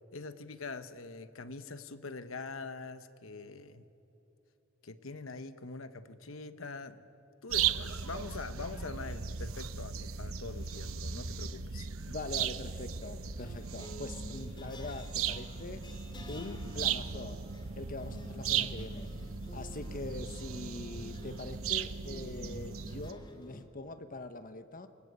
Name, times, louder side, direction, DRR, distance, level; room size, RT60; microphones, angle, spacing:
voice 1, 0.1-3.8 4.8-7.1 7.4-11.9, left 3 dB, 70° left, 11 dB, 1.1 m, -44 dB
sound 1, 7.5-23.1, right 7 dB, 75° right, 0.9 m, -37 dB
sound 2, 10.4-11.0 12.0-23.6, equal, 20° left, 2.9 m, -50 dB
voice 2, 12.1-15.9 16.3-17.4 17.8-19.1 19.5-24.9, left 2 dB, 40° left, 9 dB, 1.1 m, -43 dB
28.5 x 23.0 x 8.2 m, 3.0 s
head